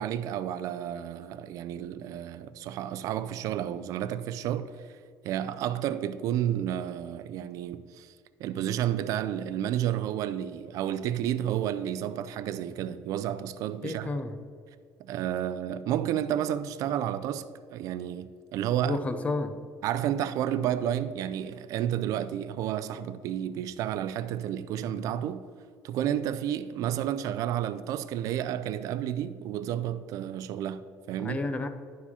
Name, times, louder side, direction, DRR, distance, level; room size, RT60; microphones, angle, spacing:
voice 1, 0.0-8.1 8.4-14.1 15.0-17.5 17.7-19.0 19.8-25.4 25.8-31.4, right 11 dB, 65° right, 0.4 m, -31 dB
voice 2, 13.8-14.4 18.8-19.6 31.2-31.7, left 2 dB, 20° left, 0.5 m, -31 dB
11.0 x 4.7 x 4.3 m
cardioid pair, 145°, 6 cm